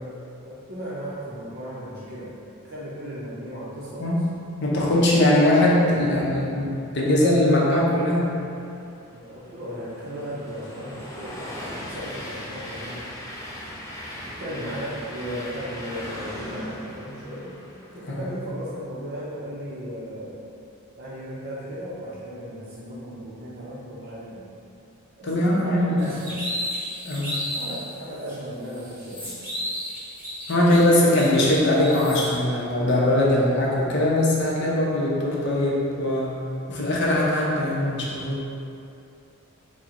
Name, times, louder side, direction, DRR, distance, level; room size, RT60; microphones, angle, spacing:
voice 1, 0.4-2.3 2.6-4.0 9.1-11.5 11.8-13.0 14.3-17.5 17.9-20.4 21.0-24.5 25.2-26.3 27.5-29.4, equal, 45° right, -8 dB, 0.5 m, -36 dB
voice 2, 4.0-8.4 17.9-18.3 25.2-26.0 27.0-27.4 30.5-36.4 36.7-38.4, left 1 dB, 50° left, -5 dB, 0.6 m, -21 dB
Train, 8.8-18.2, left 1 dB, 15° left, 0.3 m, -38 dB
sound 1, 26.0-27.8 28.3-28.4 28.7-32.3, equal, 10° right, 1.2 m, -33 dB
4.3 x 2.1 x 3.6 m, 2.6 s
head